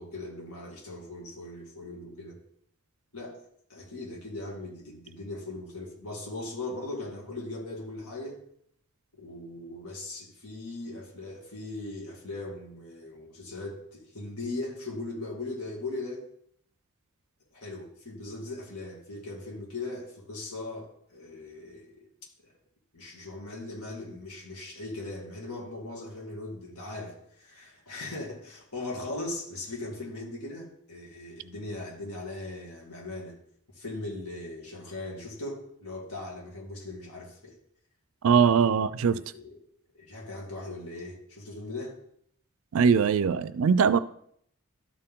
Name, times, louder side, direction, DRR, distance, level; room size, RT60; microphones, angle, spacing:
voice 1, 0.0-2.4 3.1-3.4 3.7-8.4 9.1-16.3 17.5-22.1 22.5-22.6 22.9-33.4 33.7-37.6 39.1-39.6 39.9-42.0, left 2 dB, 80° left, 2.4 m, -39 dB
voice 2, 38.2-39.2 42.7-44.0, right 6 dB, 65° right, 0.4 m, -21 dB
12.5 x 4.5 x 3.7 m
head